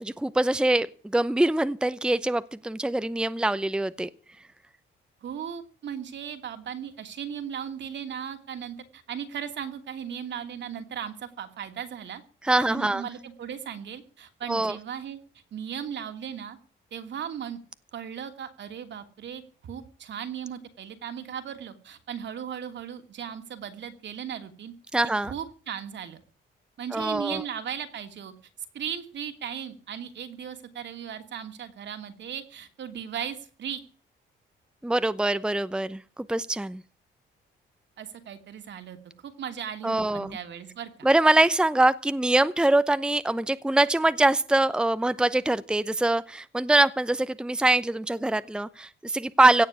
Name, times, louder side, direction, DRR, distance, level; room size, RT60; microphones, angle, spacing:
voice 1, 0.0-0.9 1.1-4.1 12.4-13.0 14.5-14.7 24.9-25.3 26.9-27.4 34.8-36.8 39.8-40.4 41.0-49.6, right 2 dB, 5° right, 0.8 m, -23 dB
voice 2, 5.2-12.2 12.7-15.2 15.5-16.6 16.9-17.6 17.9-24.7 25.2-26.2 26.8-28.3 28.7-33.8 38.0-41.1, right 8 dB, 65° right, 2.8 m, -37 dB
17.0 x 7.1 x 10.0 m
cardioid pair, 90°, 20 cm